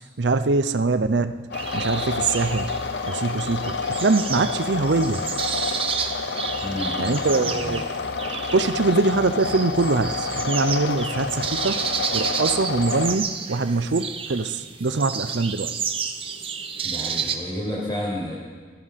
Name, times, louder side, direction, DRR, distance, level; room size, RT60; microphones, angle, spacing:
voice 1, 0.2-1.3 1.7-2.7 3.1-5.2 7.0-7.8 8.5-11.8 12.1-15.7, right 3 dB, 80° right, 11 dB, 0.6 m, -23 dB
sound 1, 1.5-13.2, left 4 dB, 75° left, 0.7 m, -29 dB
sound 2, 1.5-17.4, right 6 dB, 30° right, 0.9 m, -31 dB
voice 2, 6.6-7.8 16.8-18.4, equal, 25° left, -6 dB, 6.8 m, -31 dB
18.5 x 13.5 x 5.7 m, 1.5 s
head